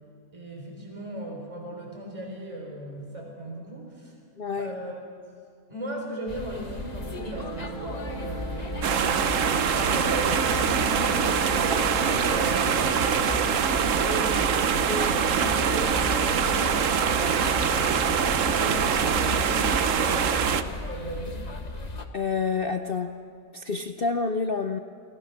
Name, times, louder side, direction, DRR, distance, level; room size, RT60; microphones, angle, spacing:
voice 1, 0.3-4.1 4.6-5.0 5.7-8.8 9.2-14.9 15.2-16.8 18.5-21.4, right 1 dB, 20° right, -1 dB, 4.2 m, -37 dB
voice 2, 4.4-4.7 14.9-15.1 22.1-23.1 23.5-24.8, left 4 dB, 50° left, 6 dB, 0.7 m, -28 dB
sound 1, 6.3-22.0, left 2 dB, 30° left, 1.2 m, -35 dB
sound 2, 6.7-13.0, right 3 dB, 85° right, 3.2 m, -36 dB
sound 3, 8.8-20.6, right 7 dB, 60° right, 1.1 m, -24 dB
29.0 x 20.0 x 5.9 m, 2.2 s
omnidirectional pair, 1.7 m